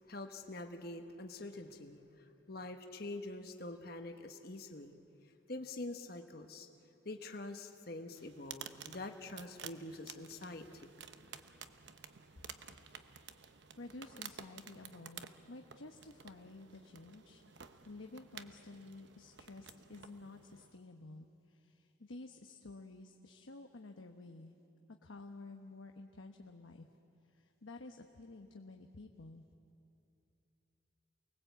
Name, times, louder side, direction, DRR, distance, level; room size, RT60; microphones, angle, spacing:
voice 1, 0.1-2.0 2.5-4.9 5.5-6.7 7.0-10.9, left 2 dB, 50° left, 5 dB, 1.2 m, -45 dB
sound 1, 8.1-20.8, right 7 dB, 60° right, 0.9 m, -53 dB
voice 2, 13.8-17.4 17.8-24.5 25.0-26.9 27.2-29.4, left 2 dB, 80° left, 4 dB, 1.1 m, -52 dB
28.5 x 20.5 x 8.2 m, 2.8 s
head